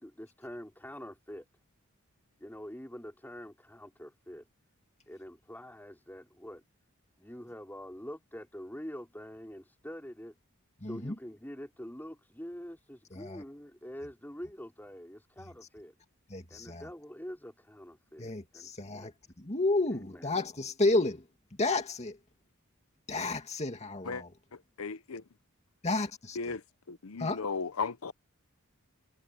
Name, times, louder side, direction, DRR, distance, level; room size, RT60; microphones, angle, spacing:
voice 1, 0.0-1.4 2.4-4.4 5.1-6.6 7.2-10.4 10.8-15.9 16.5-19.1 20.1-20.3, equal, 10° left, 4.7 m, -45 dB
voice 2, 10.8-11.2 13.1-13.4 16.3-16.9 18.2-19.1 19.4-22.2 23.1-24.4 25.8-26.6 27.2-27.5, left 2 dB, 30° left, 2.3 m, -32 dB
voice 3, 24.8-25.2 26.4-26.6 26.9-28.1, left 4 dB, 75° left, 0.8 m, -35 dB
head